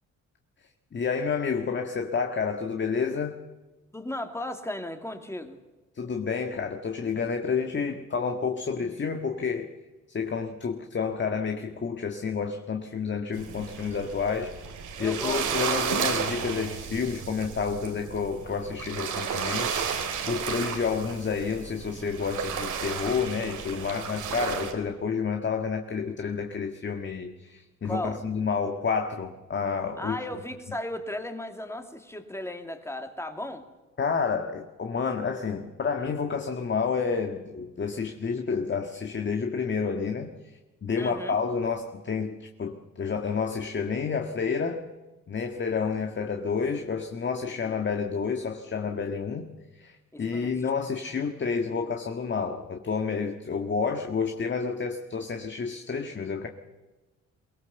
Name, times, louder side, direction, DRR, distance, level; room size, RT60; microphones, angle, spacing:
voice 1, 0.9-3.4 6.0-9.7 10.1-14.5 15.0-30.2 34.0-40.3 40.8-44.9 45.3-56.5, left 5 dB, 40° left, 5 dB, 1.8 m, -30 dB
voice 2, 3.9-5.6 15.0-15.8 27.8-28.2 30.0-33.6 41.0-41.4 50.1-50.5, left 1 dB, 10° left, 6 dB, 2.6 m, -36 dB
sound 1, 13.3-24.7, right 7 dB, 80° right, 3.5 m, -33 dB
22.5 x 18.5 x 7.0 m, 1.2 s
cardioid pair, 90°, 30 cm